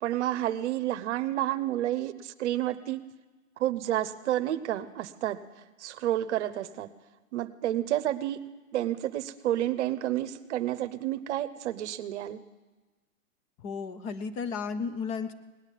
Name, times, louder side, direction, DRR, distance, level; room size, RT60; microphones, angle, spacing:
voice 1, 0.0-3.0 3.6-6.9 7.3-8.4 8.7-12.4, right 13 dB, 55° right, 12 dB, 0.9 m, -30 dB
voice 2, 13.6-15.3, left 5 dB, 20° left, 11 dB, 0.5 m, -33 dB
18.5 x 9.7 x 7.4 m, 1.2 s
hypercardioid pair, 135°, 41 cm